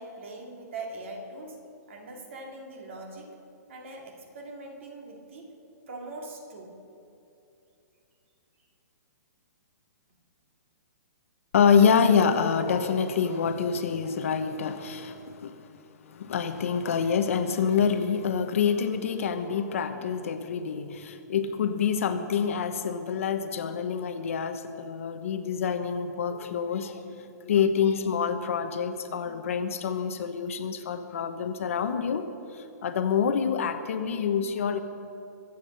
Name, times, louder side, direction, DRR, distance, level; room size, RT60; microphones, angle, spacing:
voice 1, 0.0-1.6 1.9-3.3 3.7-5.6 5.9-6.8, right 2 dB, 45° right, 2 dB, 2.5 m, -41 dB
voice 2, 11.5-15.7 16.0-27.0 27.4-32.3 32.5-34.8, left 6 dB, 50° left, 8 dB, 1.0 m, -26 dB
23.0 x 8.4 x 6.7 m, 2.8 s
hypercardioid pair, 175°, 10 cm